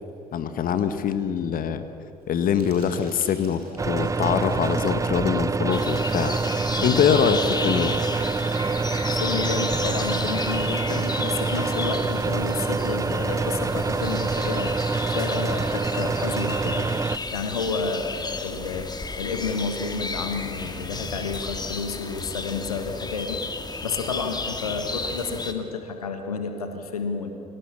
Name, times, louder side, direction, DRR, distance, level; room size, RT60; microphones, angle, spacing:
voice 1, 0.3-1.8 2.3-7.9, left 8 dB, 50° left, 10 dB, 1.6 m, -24 dB
Crumpling crinkling, 1.6-8.0, right 2 dB, 85° right, 4.3 m, -51 dB
sound 1, 3.8-17.2, right 4 dB, 15° right, 0.5 m, -26 dB
sound 2, 5.7-25.5, left 3 dB, 20° left, 2.2 m, -33 dB
voice 2, 9.1-14.7 15.1-17.0 17.3-18.9 19.2-23.4 23.8-27.3, left 4 dB, 80° left, 6 dB, 1.6 m, -30 dB
30.0 x 23.5 x 7.2 m, 2.5 s
figure-of-eight pair, 50°, 19 cm